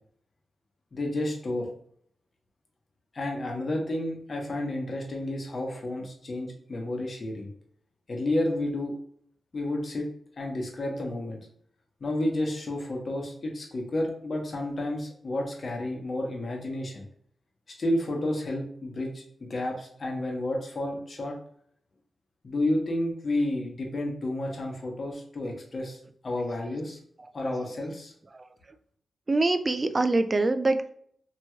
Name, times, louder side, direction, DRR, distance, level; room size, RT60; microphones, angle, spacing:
voice 1, 0.9-1.7 3.1-7.5 8.1-8.9 9.5-10.1 10.4-11.4 12.0-17.0 17.8-21.4 22.4-27.0 27.3-28.1, left 1 dB, 50° left, 0 dB, 0.9 m, -31 dB
voice 2, 29.3-30.9, right 2 dB, 30° right, 9 dB, 0.3 m, -25 dB
3.0 x 2.9 x 2.3 m, 0.63 s
cardioid pair, 75°, 0 cm